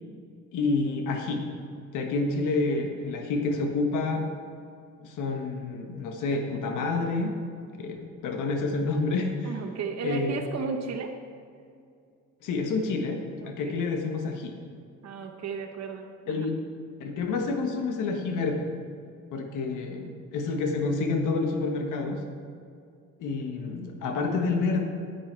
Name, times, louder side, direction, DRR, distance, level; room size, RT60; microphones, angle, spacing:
voice 1, 0.5-1.5 1.9-4.3 5.0-7.3 7.8-9.5 10.0-10.4 12.4-14.5 16.3-16.6 17.0-18.7 19.3-22.2 23.2-24.8, left 3 dB, 90° left, 4 dB, 1.4 m, -28 dB
voice 2, 9.4-11.1 13.4-13.8 15.0-16.4, right 5 dB, 60° right, 3 dB, 1.0 m, -34 dB
10.0 x 8.8 x 4.5 m, 2.3 s
cardioid pair, 90°, 30 cm